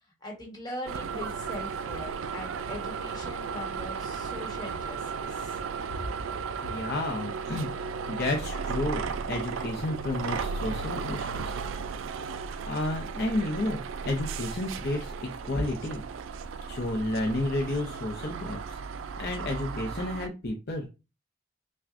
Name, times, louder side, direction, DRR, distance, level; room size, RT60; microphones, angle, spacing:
voice 1, 0.2-5.6, left 1 dB, 20° left, 0 dB, 1.3 m, -41 dB
sound 1, 0.9-20.3, right 5 dB, 80° right, 0.3 m, -35 dB
voice 2, 6.6-7.7 8.1-11.6 12.7-15.1 15.4-16.0 16.7-18.8 19.2-20.9, left 1 dB, 55° left, 0 dB, 0.6 m, -31 dB
5.9 x 2.3 x 2.5 m, 0.29 s
head